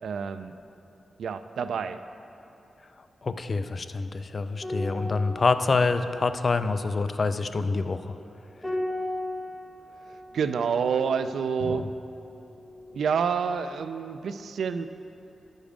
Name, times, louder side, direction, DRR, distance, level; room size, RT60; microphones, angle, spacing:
voice 1, 0.0-0.5 1.2-2.0 10.3-11.9 12.9-15.0, right 6 dB, 85° right, 11 dB, 0.3 m, -28 dB
voice 2, 3.2-8.1 11.7-11.8, left 3 dB, 40° left, 10 dB, 0.4 m, -26 dB
sound 1, 4.6-13.3 13.6-13.8, left 1 dB, ahead, 1.1 m, -38 dB
11.0 x 5.2 x 5.0 m, 2.8 s
wide cardioid pair, 100°, 0 cm